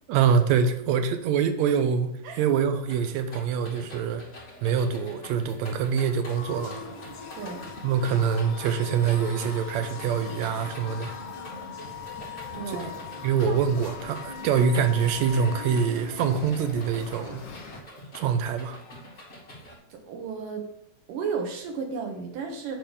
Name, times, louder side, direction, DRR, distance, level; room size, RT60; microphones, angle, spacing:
voice 1, 0.1-2.1 2.4-4.2 4.6-6.9 7.8-11.1 12.7-12.8 13.2-17.4 18.1-18.8, right 7 dB, 75° right, 7 dB, 1.9 m, -25 dB
sound 1, 2.9-19.8, left 1 dB, 20° left, 2.3 m, -45 dB
sound 2, 6.2-17.8, left 3 dB, 55° left, 1.4 m, -42 dB
Wind instrument woodwind instrument, 6.5-15.9, left 10 dB, 80° left, 1.4 m, -43 dB
voice 2, 12.5-12.9 13.5-13.8 19.9-20.6 21.1-22.8, right 5 dB, 90° right, 2 dB, 2.9 m, -33 dB
8.5 x 4.1 x 6.7 m, 0.81 s
omnidirectional pair, 3.7 m